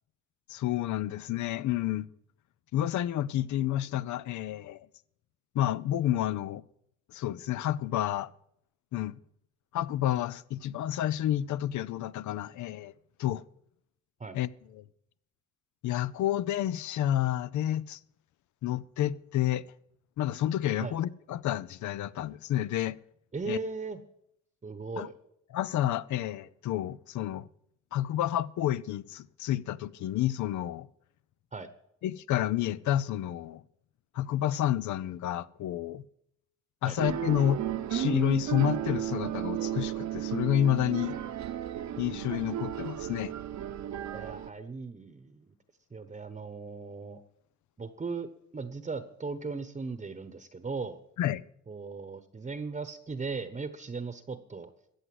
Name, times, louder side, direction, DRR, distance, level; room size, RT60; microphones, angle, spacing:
voice 1, 0.5-2.1 2.7-4.9 5.5-6.6 7.1-8.3 8.9-9.2 9.7-12.9 13.2-13.4 14.3-14.5 14.8-14.9 15.8-18.0 18.6-19.6 20.2-23.0 23.5-23.6 25.0-25.1 25.5-27.5 27.9-30.9 32.0-33.6 34.1-36.0 36.8-41.1 42.0-43.3 51.2-51.4, left 12 dB, 70° left, 0.6 m, -30 dB
voice 2, 23.3-24.0 24.6-25.1 31.5-31.7 36.8-37.0 44.1-45.5 45.9-47.2 47.8-48.3 48.5-51.0 51.7-54.7, right 4 dB, 25° right, 1.0 m, -37 dB
sound 1, 37.0-44.5, right 11 dB, 65° right, 1.0 m, -34 dB
14.5 x 8.0 x 7.7 m
cardioid pair, 90°, 30 cm